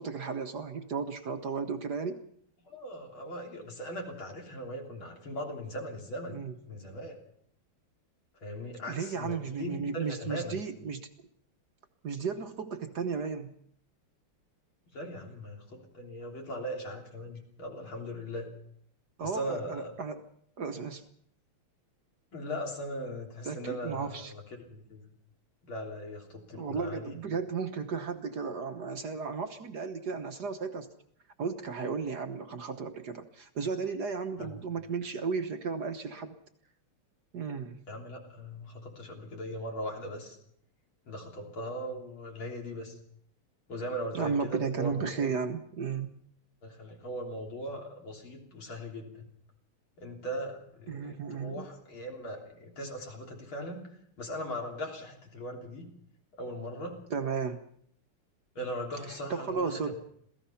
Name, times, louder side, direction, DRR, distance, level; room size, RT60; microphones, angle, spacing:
voice 1, 0.0-2.2 6.3-6.5 8.9-11.1 12.0-13.5 19.2-20.2 20.6-21.1 23.4-24.3 26.5-30.9 31.4-36.4 37.3-37.8 44.1-46.2 50.9-51.7 57.1-57.6 59.1-59.9, right 5 dB, 55° right, 7 dB, 1.5 m, -34 dB
voice 2, 2.6-7.2 8.4-10.6 14.9-18.5 19.2-19.9 22.3-25.0 25.6-27.2 34.4-34.6 37.9-40.4 41.1-43.0 43.7-45.3 46.6-49.3 50.0-53.8 54.2-55.9 56.4-57.0 58.6-59.9, equal, 65° left, 1 dB, 4.2 m, -39 dB
27.0 x 17.0 x 5.8 m, 0.68 s
omnidirectional pair, 2.4 m